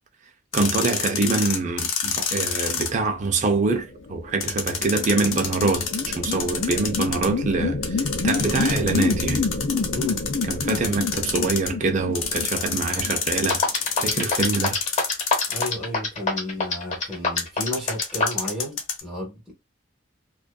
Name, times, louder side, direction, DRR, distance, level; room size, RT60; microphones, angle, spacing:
sound 1, 0.5-2.9 4.4-7.3 7.8-11.7 12.1-15.9 17.4-19.0, left 6 dB, 90° left, 0.7 m, -28 dB
voice 1, 0.5-9.5 10.5-13.6 14.0-14.8, right 3 dB, 35° right, 0.4 m, -25 dB
sound 2, 3.8-13.6, left 4 dB, 55° left, 0.5 m, -28 dB
voice 2, 9.9-10.2 15.5-19.5, left 1 dB, 5° right, 0.7 m, -33 dB
sound 3, 13.5-18.5, left 3 dB, 35° left, 0.8 m, -23 dB
2.5 x 2.3 x 2.2 m
head